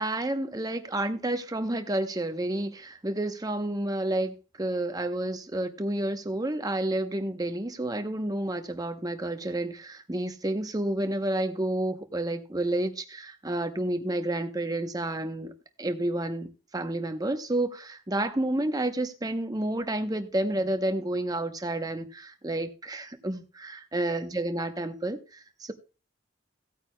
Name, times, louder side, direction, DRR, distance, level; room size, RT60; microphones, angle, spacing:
voice 1, 0.0-15.5 15.8-25.7, right 1 dB, 20° right, 0.8 m, -30 dB
17.0 x 8.8 x 2.2 m
head